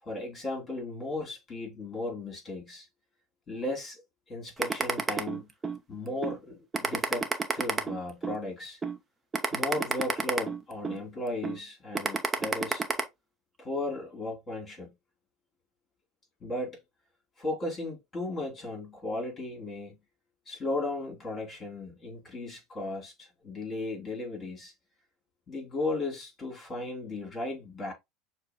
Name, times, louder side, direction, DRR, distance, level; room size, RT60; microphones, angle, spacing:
voice 1, 0.0-2.9 3.5-4.0 4.3-5.5 5.9-7.3 7.5-8.8 9.5-12.8 13.6-14.9 16.4-16.8 17.4-20.0 20.5-24.7 25.5-27.9, left 2 dB, 25° left, 2.9 m, -35 dB
sound 1, 4.6-5.8 6.2-6.4 6.7-8.4 8.8-9.0 9.3-11.0 11.4-11.6 11.9-13.0, right 4 dB, 20° right, 0.7 m, -29 dB
6.4 x 2.2 x 2.8 m
supercardioid pair, 120°, 0 cm